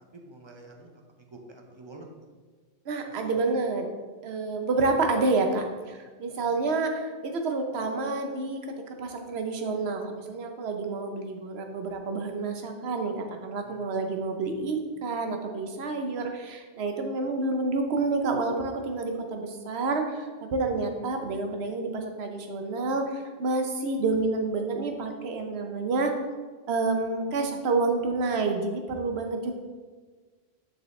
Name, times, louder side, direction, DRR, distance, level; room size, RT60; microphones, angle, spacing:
voice 1, 0.1-2.0 6.4-6.5 13.7-13.9, right 2 dB, 30° right, 2 dB, 0.8 m, -48 dB
voice 2, 2.9-3.9 4.2-8.6 9.0-13.2 13.4-26.1 26.7-29.5, right 3 dB, 75° right, 4 dB, 1.1 m, -29 dB
6.8 x 5.9 x 3.2 m, 1.4 s
omnidirectional pair, 1.1 m